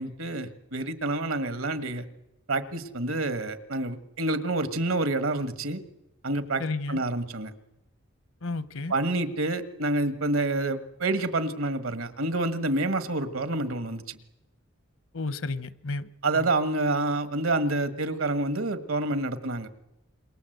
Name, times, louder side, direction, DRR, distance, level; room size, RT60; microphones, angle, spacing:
voice 1, 0.0-2.0 2.5-5.8 6.2-6.6 6.9-7.5 8.9-14.2 16.2-19.7, right 2 dB, 80° right, 1.7 m, -28 dB
voice 2, 6.6-7.0 8.4-8.9 15.1-16.5, left 3 dB, 75° left, 0.9 m, -33 dB
27.0 x 23.0 x 8.0 m
head